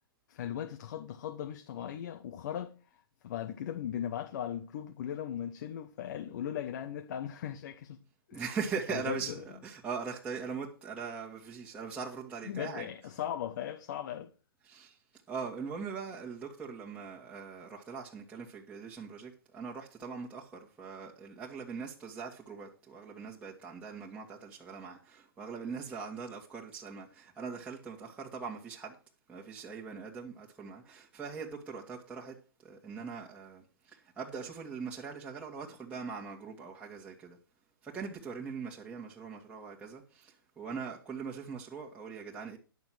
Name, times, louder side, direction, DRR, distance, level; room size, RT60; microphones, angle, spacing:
voice 1, 0.3-2.7 3.2-8.0 8.3-8.4 8.9-9.2 12.4-14.3, left 10 dB, 50° left, 1.0 m, -38 dB
voice 2, 8.3-12.9 14.6-15.0 15.3-29.0 29.3-37.4 37.8-42.6, right 5 dB, 10° right, 1.8 m, -41 dB
11.0 x 6.9 x 6.1 m
hypercardioid pair, 130°, 12 cm